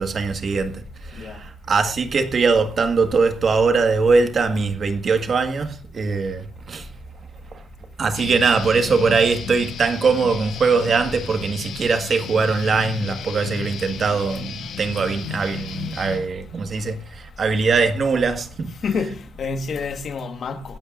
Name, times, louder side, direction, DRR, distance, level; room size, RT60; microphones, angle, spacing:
voice 1, 0.0-6.9 7.5-7.6 8.0-19.1, right 4 dB, 45° right, 1.6 m, -21 dB
voice 2, 1.1-1.4 18.8-20.8, left 5 dB, 55° left, 1.5 m, -28 dB
Guitar, 8.1-16.2, left 6 dB, 80° left, 7.2 m, -33 dB
24.0 x 8.6 x 2.5 m
cardioid pair, 90°, 0 cm